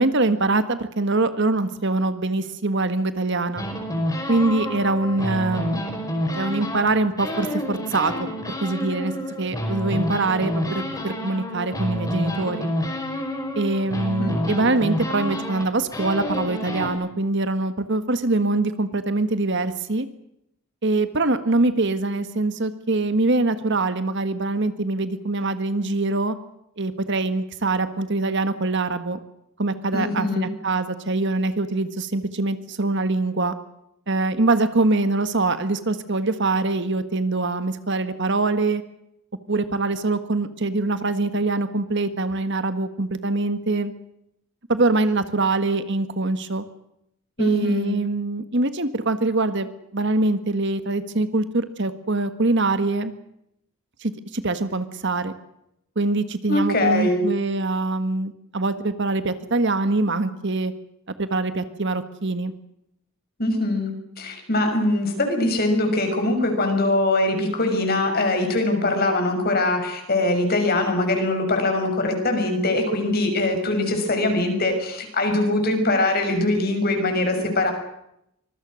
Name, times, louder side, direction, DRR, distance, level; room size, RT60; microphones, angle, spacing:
voice 1, 0.0-3.7 4.3-5.8 6.3-8.3 8.6-9.1 9.4-12.7 13.5-20.1 20.8-26.3 26.8-29.2 29.6-33.5 34.1-38.8 39.5-43.9 44.7-46.6 47.4-53.1 54.0-55.3 55.9-60.7 61.2-62.5, right 2 dB, 55° right, 11 dB, 1.6 m, -23 dB
sound 1, 3.6-6.9 7.2-16.9, equal, 15° left, 4.9 m, -28 dB
voice 2, 14.2-14.7 29.9-30.5 47.4-48.0 56.5-57.2 63.4-77.7, left 2 dB, 45° left, 5 dB, 6.2 m, -22 dB
25.5 x 21.0 x 6.4 m, 0.78 s
head